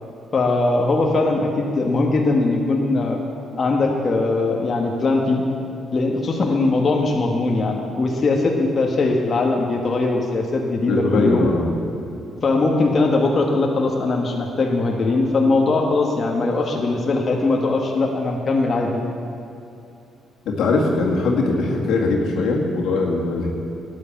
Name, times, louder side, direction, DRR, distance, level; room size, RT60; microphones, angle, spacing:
voice 1, 0.3-3.2 3.6-5.4 5.9-11.5 12.4-19.0, left 3 dB, 40° left, 0 dB, 1.4 m, -20 dB
voice 2, 10.9-11.8 20.5-23.5, left 3 dB, 80° left, -1 dB, 2.2 m, -21 dB
12.5 x 9.7 x 7.2 m, 2.7 s
cardioid pair, 90°, 0 cm